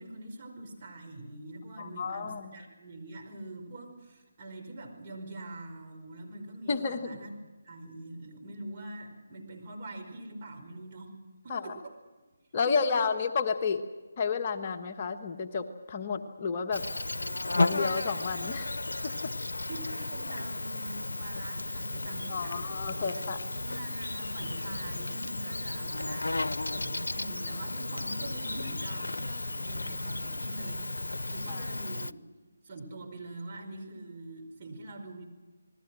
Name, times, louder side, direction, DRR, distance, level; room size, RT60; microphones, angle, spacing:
voice 1, 0.0-7.3 7.6-11.1 11.4-12.0 12.9-13.0 19.7-32.2 32.6-35.2, right 2 dB, 35° right, 1 dB, 5.1 m, -44 dB
voice 2, 1.8-2.6 6.7-7.2 11.5-11.8 12.5-13.8 14.2-16.8 17.6-18.7 19.0-19.3 22.3-23.4 31.5-31.6, left 5 dB, 35° left, 5 dB, 1.3 m, -31 dB
Insect, 16.7-32.1, left 2 dB, 80° left, 0.7 m, -34 dB
28.5 x 20.0 x 6.2 m, 1.2 s
figure-of-eight pair, 155°, 0 cm